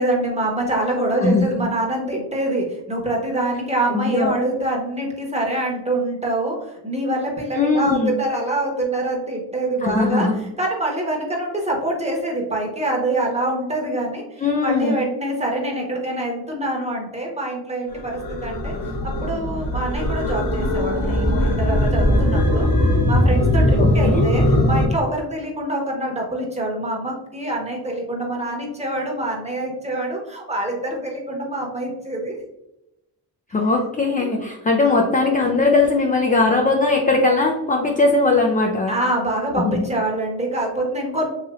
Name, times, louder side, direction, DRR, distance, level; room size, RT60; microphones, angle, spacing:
voice 1, 0.0-18.7 19.0-22.7 23.1-32.4 34.2-34.3 34.9-35.3 38.9-41.3, right 1 dB, 15° right, -1 dB, 1.0 m, -25 dB
voice 2, 3.9-4.3 7.5-8.2 9.8-10.3 14.4-15.0 23.8-24.3 33.5-38.9 39.6-39.9, left 3 dB, 20° left, 1 dB, 0.4 m, -19 dB
sound 1, 17.9-24.9, left 1 dB, 50° left, 1.0 m, -19 dB
3.2 x 2.8 x 2.4 m, 0.89 s
cardioid pair, 50°, 45 cm